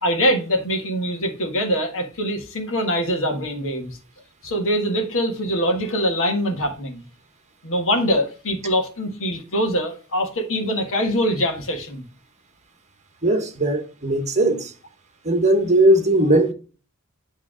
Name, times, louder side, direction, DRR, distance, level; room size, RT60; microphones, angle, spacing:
voice 1, 0.0-4.0 4.4-7.0 7.6-12.0, equal, 65° left, 1.6 m, -23 dB
voice 2, 13.2-14.7 15.2-16.5, right 1 dB, 30° right, 1.2 m, -18 dB
8.3 x 3.6 x 5.0 m
head